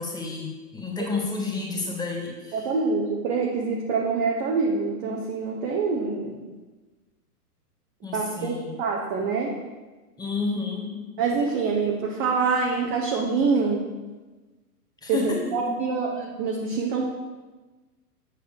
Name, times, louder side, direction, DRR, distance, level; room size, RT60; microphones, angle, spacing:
voice 1, 0.0-2.6 8.0-8.7 10.2-11.1 15.0-15.4 15.6-15.8, left 4 dB, 10° left, -1 dB, 1.6 m, -30 dB
voice 2, 2.5-6.4 8.1-9.5 11.2-13.8 15.1-17.1, right 4 dB, 15° right, -1 dB, 0.4 m, -25 dB
8.1 x 6.1 x 5.0 m, 1.2 s
hypercardioid pair, 115°, 47 cm